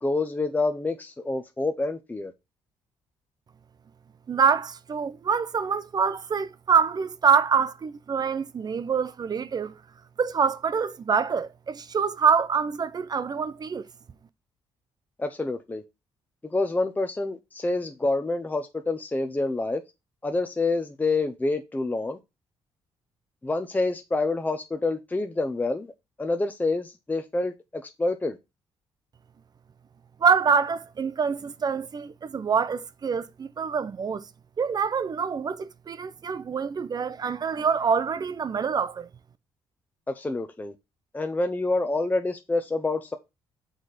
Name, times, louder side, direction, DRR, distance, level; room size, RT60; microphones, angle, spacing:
voice 1, 0.0-2.3 15.2-15.8 16.4-19.8 20.2-22.2 23.4-25.9 26.2-28.4 40.1-40.7 41.1-43.2, left 2 dB, 15° left, 0.7 m, -27 dB
voice 2, 4.3-9.8 10.2-13.9 30.2-34.2 34.6-39.1, right 6 dB, 40° right, 0.6 m, -25 dB
6.2 x 4.2 x 4.9 m
cardioid pair, 80°, 10 cm